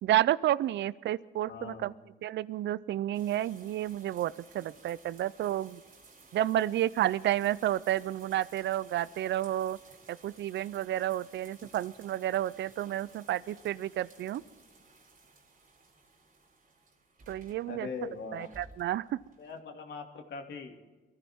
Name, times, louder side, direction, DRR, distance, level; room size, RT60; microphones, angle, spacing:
voice 1, 0.0-1.9 2.2-5.8 6.3-9.8 10.1-14.4 17.3-17.9 18.3-19.2, right 13 dB, 65° right, 20 dB, 0.5 m, -31 dB
voice 2, 1.5-1.9 17.7-18.5 19.4-20.7, left 5 dB, 60° left, 3 dB, 2.6 m, -41 dB
sound 1, 3.1-19.6, right 3 dB, 45° right, 3.4 m, -57 dB
23.0 x 14.5 x 3.6 m, 1.2 s
cardioid pair, 90°, 20 cm